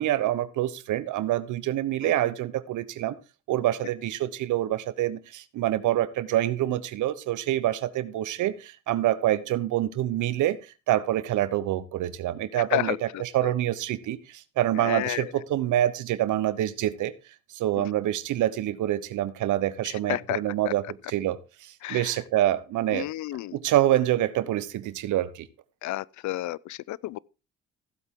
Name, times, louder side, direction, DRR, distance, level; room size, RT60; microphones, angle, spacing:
voice 1, 0.0-3.1 3.5-10.6 10.9-17.1 17.5-23.1 23.5-25.5, right 13 dB, 80° right, 0.9 m, -26 dB
voice 2, 14.8-15.3 20.1-20.4 20.6-20.7 21.8-22.1 22.9-23.6 25.8-27.2, left 16 dB, 70° left, 0.5 m, -30 dB
15.0 x 8.1 x 3.7 m
cardioid pair, 90°, 30 cm